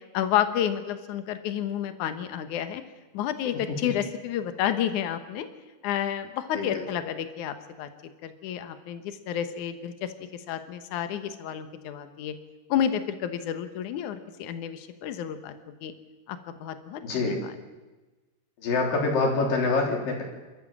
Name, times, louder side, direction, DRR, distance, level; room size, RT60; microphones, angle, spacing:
voice 1, 0.1-2.8 3.1-5.5 5.8-7.9 8.2-12.3 12.7-15.5 15.8-15.9 16.3-17.4, left 10 dB, 75° left, 10 dB, 1.8 m, -30 dB
voice 2, 17.0-17.4 18.6-20.2, left 3 dB, 50° left, 1 dB, 5.0 m, -25 dB
30.0 x 13.5 x 7.3 m, 1.2 s
omnidirectional pair, 5.2 m